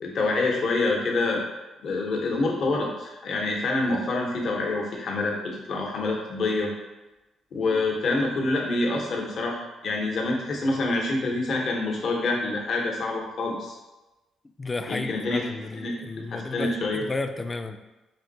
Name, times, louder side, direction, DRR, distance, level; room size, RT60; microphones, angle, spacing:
voice 1, 0.0-1.4 1.8-6.7 7.5-9.6 9.8-13.8 14.9-15.4 15.7-15.9 16.3-17.0, left 2 dB, 60° left, -1 dB, 0.8 m, -26 dB
voice 2, 14.6-17.8, left 3 dB, 25° left, 8 dB, 0.3 m, -33 dB
3.4 x 2.6 x 3.9 m, 1.1 s
cardioid pair, 90°, 0 cm